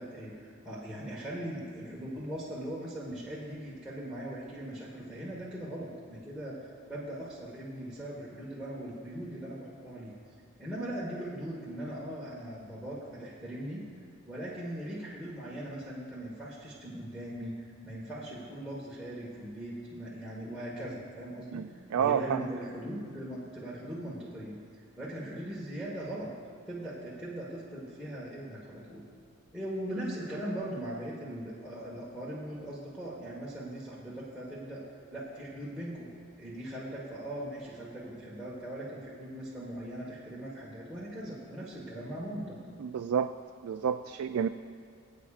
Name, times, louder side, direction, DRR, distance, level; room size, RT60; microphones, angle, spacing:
voice 1, 0.0-10.1 10.6-13.8 14.3-26.3 26.7-29.0 29.5-34.8 35.1-36.1 36.4-42.6, right 1 dB, 5° right, -9 dB, 1.5 m, -40 dB
voice 2, 21.5-22.5 42.8-43.3 43.6-44.5, right 8 dB, 80° right, 8 dB, 0.3 m, -30 dB
23.0 x 8.5 x 2.5 m, 2.3 s
head